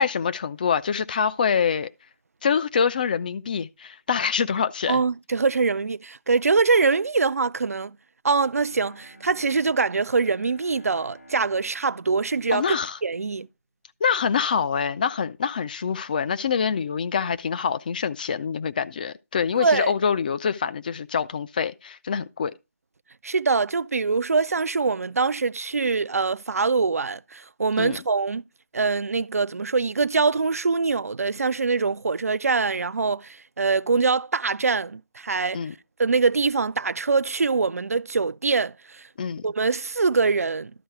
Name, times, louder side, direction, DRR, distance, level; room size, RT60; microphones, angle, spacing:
voice 1, 0.0-1.9 2.4-5.0 12.5-13.0 14.0-22.5 27.8-28.0 35.5-35.7 39.2-39.4, left 6 dB, 35° left, 0.5 m, -25 dB
voice 2, 4.9-8.0 8.2-12.7 13.0-13.5 19.6-19.9 23.2-28.4 28.7-35.6 36.0-39.1 39.4-40.7, right 4 dB, 70° right, 0.4 m, -23 dB
Bowed string instrument, 8.6-13.5, equal, 85° left, 4.4 m, -52 dB
12.0 x 4.6 x 4.6 m
figure-of-eight pair, 155°, 8 cm